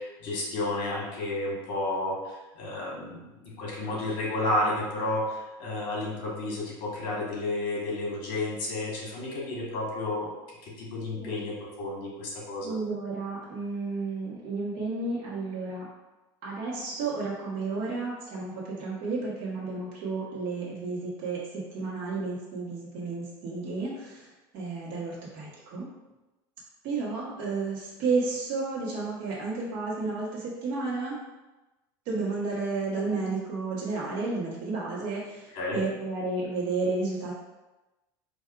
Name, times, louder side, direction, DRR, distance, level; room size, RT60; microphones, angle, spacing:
voice 1, 0.0-10.3 10.6-12.7 35.5-35.8, left 2 dB, 55° left, -3 dB, 1.4 m, -31 dB
voice 2, 12.6-15.9 16.4-25.9 26.8-31.2 32.0-37.3, right 3 dB, 55° right, -7 dB, 1.3 m, -32 dB
4.6 x 2.6 x 2.4 m, 1.1 s
cardioid pair, 155°, 11 cm